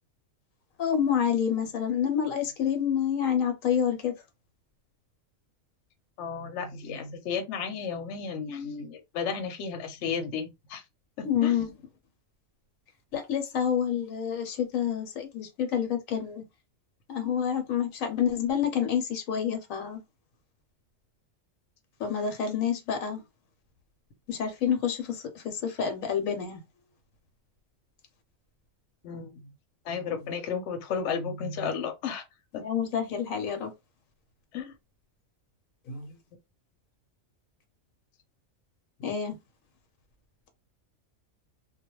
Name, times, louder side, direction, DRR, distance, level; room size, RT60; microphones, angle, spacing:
voice 1, 0.8-4.1 11.2-11.7 13.1-16.4 17.1-20.0 22.0-23.2 24.3-26.6 32.6-33.7 35.9-36.1 39.0-39.3, left 8 dB, 80° left, 1.0 m, -28 dB
voice 2, 6.2-10.8 11.2-11.5 29.0-29.3 29.9-32.2 32.5-32.6 34.5-34.7, left 6 dB, 65° left, 0.9 m, -33 dB
2.3 x 2.1 x 3.0 m
omnidirectional pair, 1.4 m